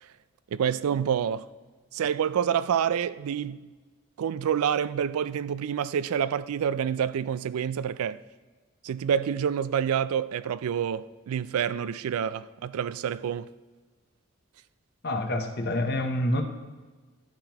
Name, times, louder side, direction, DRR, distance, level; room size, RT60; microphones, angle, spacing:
voice 1, 0.5-1.5 1.9-3.7 4.2-8.2 8.8-13.5, right 8 dB, 80° right, 0.3 m, -27 dB
voice 2, 15.0-16.4, left 1 dB, 45° left, 0.8 m, -27 dB
12.0 x 5.5 x 3.0 m
head